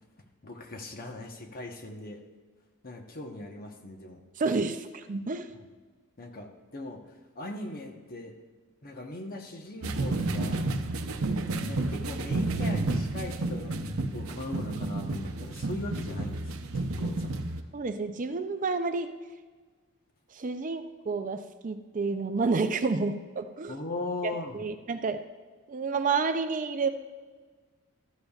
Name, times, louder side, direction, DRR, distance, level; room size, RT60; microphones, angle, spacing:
voice 1, 0.4-2.2 2.8-4.6 6.2-8.4 8.8-10.7 11.7-13.8 14.1-17.4 23.7-24.6, left 2 dB, 45° left, 4 dB, 1.1 m, -39 dB
voice 2, 4.4-5.5 17.7-19.1 20.3-23.7 24.2-25.2 25.7-26.9, right 4 dB, 40° right, 8 dB, 0.5 m, -30 dB
sound 1, 9.8-17.6, right 2 dB, 70° right, 0.7 m, -31 dB
14.0 x 13.5 x 2.4 m, 1.4 s
head